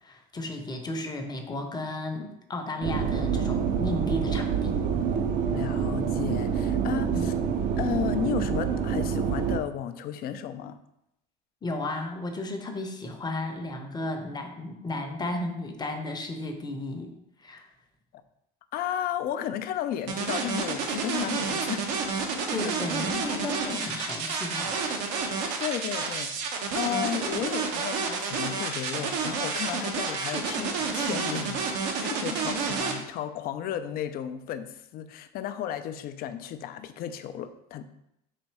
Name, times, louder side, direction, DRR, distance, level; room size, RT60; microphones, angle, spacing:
voice 1, 0.0-4.8 7.1-7.3 11.6-17.7 22.5-25.1 32.3-32.7, left 2 dB, 20° left, 4 dB, 0.7 m, -34 dB
sound 1, 2.8-9.6, right 7 dB, 40° right, 0.5 m, -27 dB
voice 2, 5.5-7.3 7.8-10.8 18.1-18.2 18.7-21.8 22.6-22.7 25.6-31.6 32.0-37.8, left 10 dB, 45° left, 11 dB, 0.4 m, -33 dB
sound 2, 20.1-32.9, right 5 dB, 80° right, 0.9 m, -29 dB
4.1 x 2.6 x 4.6 m, 0.81 s
supercardioid pair, 100°, 21 cm